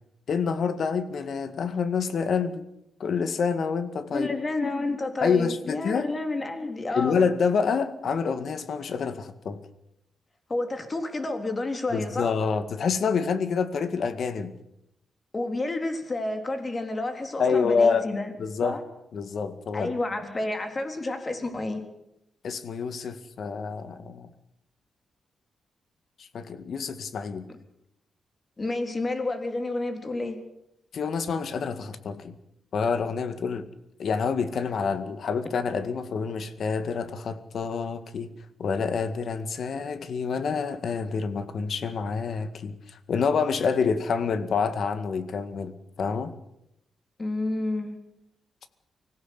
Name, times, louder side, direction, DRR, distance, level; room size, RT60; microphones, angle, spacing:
voice 1, 0.3-2.6 3.0-4.3 5.2-6.1 6.9-9.6 11.9-14.5 17.4-18.1 18.4-18.8 19.1-20.0 22.4-24.3 26.2-27.5 30.9-32.4 32.7-33.7 34.0-38.3 38.6-46.3, left 5 dB, 60° left, 11 dB, 2.0 m, -27 dB
voice 2, 4.1-7.2 10.5-12.3 15.3-18.3 18.6-18.8 19.7-21.8 28.6-30.4 47.2-48.0, left 2 dB, 25° left, 6 dB, 3.7 m, -30 dB
25.0 x 16.5 x 8.3 m, 0.82 s
cardioid pair, 110°, 0 cm